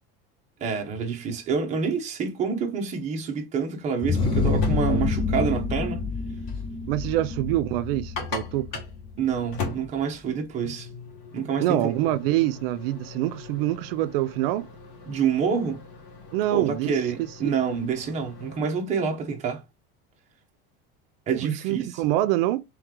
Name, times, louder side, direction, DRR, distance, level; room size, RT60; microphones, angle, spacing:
voice 1, 0.6-6.1 9.2-10.9 11.3-11.9 15.1-15.8 16.5-19.6 21.3-21.9, right 6 dB, 25° right, 0.8 m, -27 dB
sound 1, 4.0-9.5, left 4 dB, 20° left, 0.4 m, -27 dB
sound 2, 4.2-18.6, left 4 dB, 60° left, 1.5 m, -40 dB
voice 2, 6.9-8.7 11.6-14.7 16.3-17.5 21.3-22.6, right 15 dB, 80° right, 0.5 m, -25 dB
3.3 x 3.1 x 3.6 m
cardioid pair, 165°, 29 cm